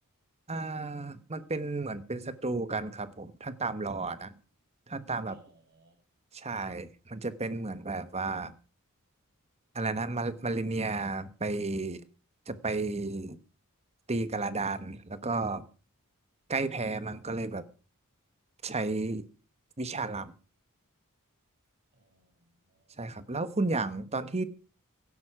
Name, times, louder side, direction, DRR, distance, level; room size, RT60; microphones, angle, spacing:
voice 1, 0.5-4.3 4.9-5.4 6.3-8.5 9.7-12.0 12.5-13.4 14.1-15.7 16.5-17.6 18.6-19.2 19.8-20.3 23.0-24.4, right 3 dB, 30° right, 1.2 m, -33 dB
voice 2, 5.3-6.1 21.9-23.2, right 2 dB, 50° right, 7.1 m, -64 dB
16.5 x 12.5 x 4.9 m
head